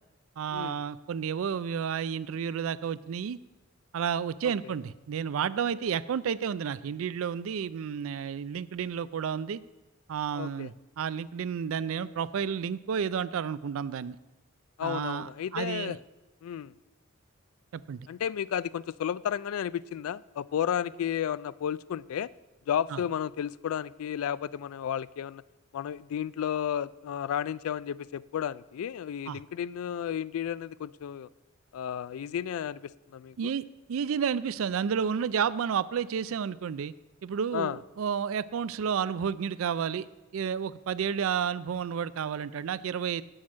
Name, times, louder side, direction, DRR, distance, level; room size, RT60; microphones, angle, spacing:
voice 1, 0.4-3.4 3.9-9.6 10.1-14.2 14.8-16.0 17.7-18.1 22.9-23.0 29.3-29.4 33.4-33.6 33.9-36.9 37.2-40.1 40.3-43.2, right 7 dB, 70° right, 17 dB, 0.4 m, -31 dB
voice 2, 10.4-10.7 14.8-16.0 16.4-16.7 18.1-22.3 22.7-25.4 25.7-31.3 31.7-33.5 37.5-37.8, left 9 dB, 80° left, 20 dB, 0.3 m, -33 dB
7.2 x 6.3 x 7.8 m, 1.1 s
head